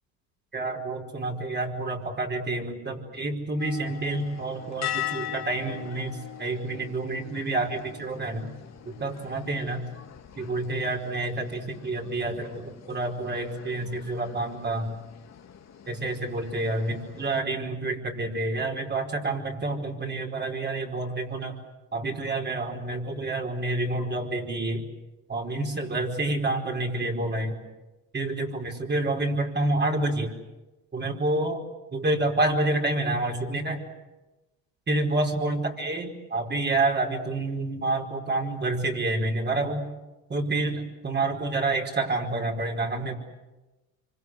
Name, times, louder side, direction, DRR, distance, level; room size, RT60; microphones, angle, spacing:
voice 1, 0.5-8.5 8.8-9.9 10.4-14.9 15.9-21.6 21.9-24.8 25.3-27.6 28.1-30.4 30.9-31.6 31.9-33.8 34.9-39.9 40.3-43.1, right 2 dB, 25° right, 1 dB, 4.9 m, -28 dB
sound 1, 3.6-17.4, left 10 dB, 40° left, 2.3 m, -41 dB
26.0 x 25.5 x 8.0 m, 1.1 s
supercardioid pair, 100°, 42 cm